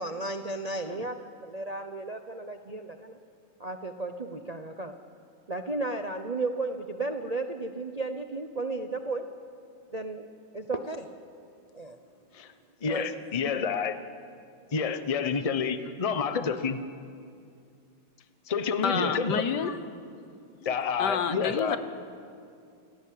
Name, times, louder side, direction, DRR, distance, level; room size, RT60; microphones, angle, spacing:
voice 1, 0.0-3.2 3.6-4.9 5.5-9.2 9.9-10.2 10.5-11.1 11.7-12.0 12.9-13.2, right 2 dB, 85° right, 6 dB, 0.3 m, -34 dB
voice 2, 12.8-14.0 14.7-16.8 18.5-19.4 20.6-21.8, left 5 dB, 30° left, 10 dB, 0.6 m, -29 dB
voice 3, 18.8-19.8 20.6-21.8, left 6 dB, 60° left, 10 dB, 1.6 m, -29 dB
28.0 x 17.5 x 8.6 m, 2.4 s
omnidirectional pair, 2.2 m